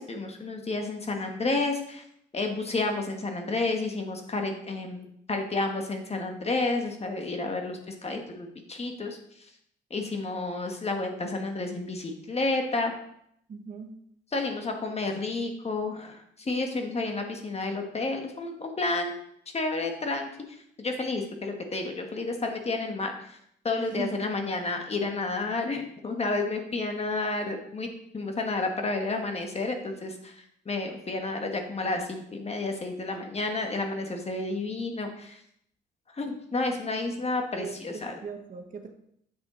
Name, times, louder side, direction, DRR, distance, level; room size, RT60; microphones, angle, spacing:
voice 1, 0.0-2.0 2.3-9.2 9.9-12.9 14.3-19.2 19.5-23.4 23.6-27.9 28.1-35.4 36.1-38.1, left 3 dB, 30° left, 3 dB, 1.4 m, -31 dB
voice 2, 13.5-13.9 23.8-24.1 33.1-33.3 37.6-38.9, right 5 dB, 40° right, 5 dB, 1.2 m, -39 dB
8.2 x 6.2 x 3.9 m, 0.71 s
cardioid pair, 90°, 20 cm